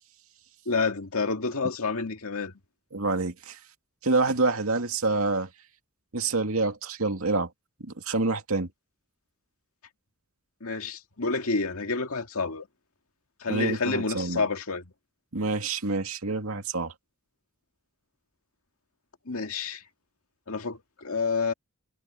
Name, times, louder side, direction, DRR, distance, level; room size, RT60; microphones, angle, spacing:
voice 1, 0.7-2.5 10.6-12.7 13.4-14.8 19.3-19.8 20.5-21.5, left 4 dB, 80° left, 2.1 m, -29 dB
voice 2, 2.9-3.6 4.0-5.5 6.1-7.5 7.8-8.7 13.5-14.4 15.3-16.9, right 3 dB, 75° right, 2.4 m, -27 dB
head